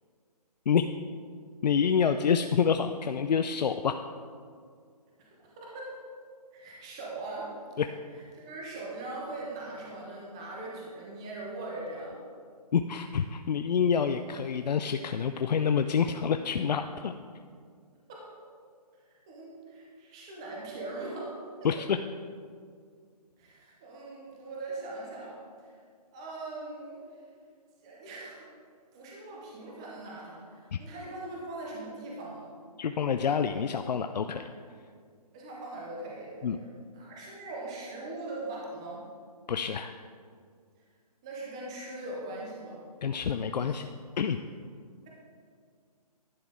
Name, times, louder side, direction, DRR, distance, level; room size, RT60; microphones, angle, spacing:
voice 1, 1.6-4.0 7.8-7.9 12.7-17.1 21.6-22.0 32.8-34.5 36.4-36.6 39.5-39.9 43.0-43.9 44.2-44.4, left 7 dB, 85° left, 8 dB, 0.4 m, -27 dB
voice 2, 5.6-5.9 6.5-7.5 8.1-12.1 18.1-18.2 19.3-21.3 21.6-21.7 23.4-25.7 26.1-27.0 27.8-28.5 28.9-32.5 35.3-36.5 36.9-39.0 41.2-42.8, right 2 dB, 10° right, -4 dB, 0.4 m, -40 dB
10.5 x 6.1 x 3.7 m, 2.1 s
hypercardioid pair, 165°, 21 cm